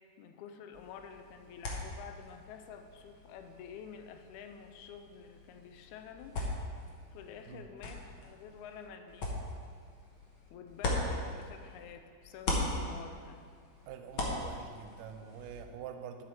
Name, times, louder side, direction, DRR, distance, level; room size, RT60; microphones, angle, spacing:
voice 1, 0.2-6.4 7.1-9.4 10.5-13.4, left 7 dB, 85° left, 6 dB, 1.7 m, -49 dB
sound 1, 0.7-11.9 12.2-15.6, left 2 dB, 65° left, 1.2 m, -40 dB
voice 2, 13.9-16.2, right 8 dB, 80° right, 6 dB, 2.1 m, -45 dB
8.8 x 7.2 x 4.5 m, 2.1 s
omnidirectional pair, 3.9 m